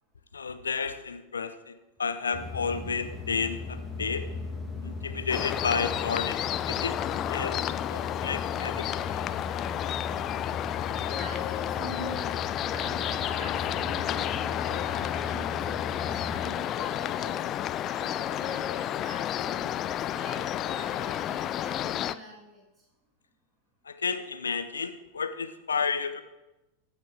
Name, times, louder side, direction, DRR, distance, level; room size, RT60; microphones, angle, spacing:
voice 1, 0.3-4.3 4.8-7.0 7.2-7.6 7.9-9.3 12.0-12.1 23.8-26.2, left 5 dB, 70° left, 10 dB, 0.8 m, -32 dB
sound 1, 2.3-16.5, left 4 dB, 5° left, 1.6 m, -38 dB
sound 2, 5.3-22.2, left 11 dB, 30° left, 0.4 m, -31 dB
voice 2, 10.9-12.4 12.7-17.4 17.9-22.7, equal, 20° right, -1 dB, 2.0 m, -44 dB
14.5 x 5.6 x 4.9 m, 0.98 s
figure-of-eight pair, 90°, 0 cm